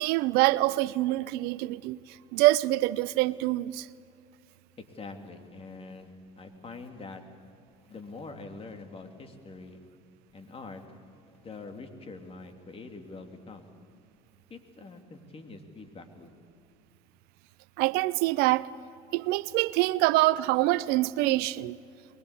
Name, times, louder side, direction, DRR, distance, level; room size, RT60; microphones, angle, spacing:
voice 1, 0.0-2.0 2.3-3.9 17.8-18.7 19.1-21.8, right 18 dB, 65° right, 0.6 m, -25 dB
voice 2, 4.9-7.2 7.8-9.8 10.3-10.8 11.3-13.7 14.5-16.3, left 3 dB, 35° left, 3.0 m, -44 dB
23.0 x 21.0 x 8.5 m
hypercardioid pair, 75°, 18 cm